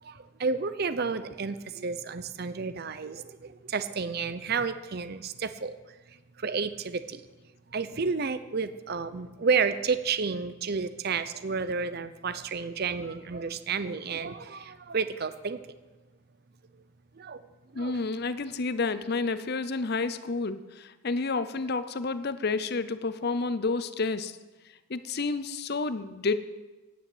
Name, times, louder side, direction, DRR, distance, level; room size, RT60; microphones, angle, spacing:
voice 1, 0.0-5.8 6.1-7.2 7.7-15.6 17.1-17.4 17.7-18.0, right 5 dB, 45° right, 12 dB, 0.6 m, -31 dB
voice 2, 17.7-24.4 24.9-26.4, left 3 dB, 45° left, 13 dB, 0.6 m, -30 dB
10.0 x 9.2 x 7.9 m, 1.2 s
head